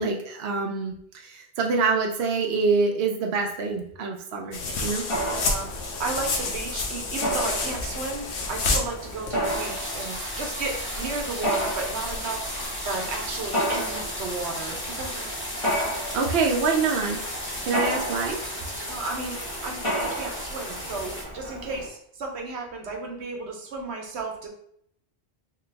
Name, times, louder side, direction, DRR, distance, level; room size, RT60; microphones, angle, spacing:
voice 1, 0.0-5.0 16.1-17.2 17.6-18.4, right 4 dB, 70° right, 1 dB, 0.8 m, -25 dB
sound 1, 4.5-9.6, left 3 dB, 80° left, 1.0 m, -29 dB
Mechanisms, 5.1-21.9, equal, 30° left, 1.2 m, -33 dB
voice 2, 5.2-12.5 12.8-15.3 18.9-24.5, right 3 dB, 85° right, 2 dB, 1.1 m, -34 dB
sound 2, 9.4-21.2, equal, 10° left, 0.8 m, -34 dB
3.2 x 3.0 x 3.3 m, 0.70 s
omnidirectional pair, 1.1 m